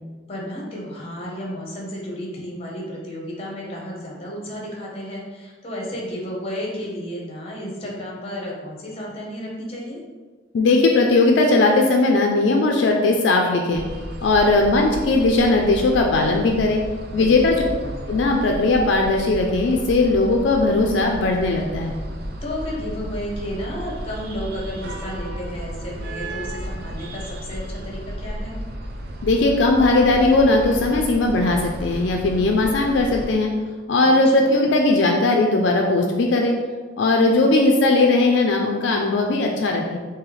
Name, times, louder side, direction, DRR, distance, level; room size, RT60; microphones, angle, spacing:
voice 1, 0.3-10.0 17.1-17.7 22.4-28.6 34.3-34.7, equal, 30° left, -2 dB, 0.8 m, -32 dB
voice 2, 10.5-13.8 14.2-16.8 17.1-17.6 18.1-21.9 29.2-33.5 33.9-36.6 37.0-40.0, left 2 dB, 70° left, 1 dB, 0.4 m, -18 dB
sound 1, 13.7-33.4, right 1 dB, 55° right, 0.4 m, -33 dB
3.2 x 2.7 x 3.8 m, 1.4 s
head